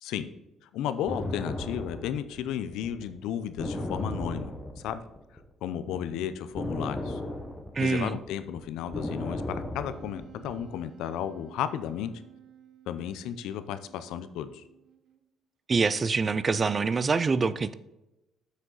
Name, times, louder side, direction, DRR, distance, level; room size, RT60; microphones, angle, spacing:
voice 1, 0.7-5.0 5.6-7.2 7.8-12.1 12.9-14.6, left 10 dB, 85° left, 11 dB, 0.5 m, -34 dB
sound 1, 1.1-5.4 5.7-10.7, left 1 dB, 10° left, 1.0 m, -35 dB
voice 2, 7.7-8.2 15.7-17.7, right 4 dB, 25° right, 16 dB, 0.3 m, -25 dB
Wind instrument woodwind instrument, 9.7-15.4, right 12 dB, 60° right, 0.9 m, -54 dB
7.4 x 6.3 x 4.0 m, 0.95 s
cardioid pair, 150°, 0 cm